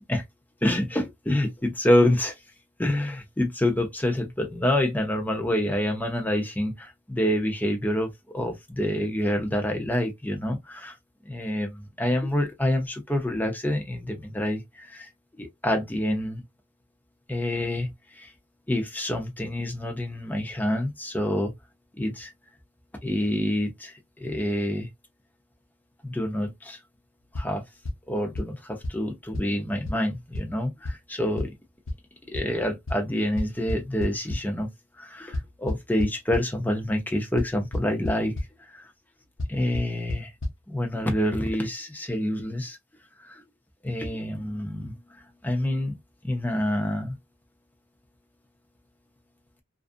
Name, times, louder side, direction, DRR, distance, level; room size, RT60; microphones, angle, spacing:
voice 1, 0.6-2.3 2.8-10.9 11.3-15.1 15.4-16.4 17.3-18.3 18.7-21.5 22.0-22.3 23.0-24.9 26.0-26.8 27.4-27.6 28.1-31.5 32.3-34.7 35.0-38.3 38.7-38.9 39.5-40.3 40.7-42.8 43.2-43.4 43.8-44.9 45.4-45.9 46.2-47.2, left 1 dB, 10° left, 0.6 m, -27 dB
sound 1, 27.3-27.5 27.9-28.0 28.4-28.5 28.8-28.9 29.3-29.4 29.9-30.0 30.3-30.4 30.8-30.9 31.4-31.5 31.9-32.0 32.3-32.4 32.9-33.0 33.4-34.4 35.3-36.4 37.4-37.5 37.7-38.1 38.4-38.5 39.4-39.5 39.7-39.8 40.1-40.2 40.4-40.5, left 1 dB, 85° left, 0.8 m, -28 dB
2.5 x 2.4 x 2.5 m
head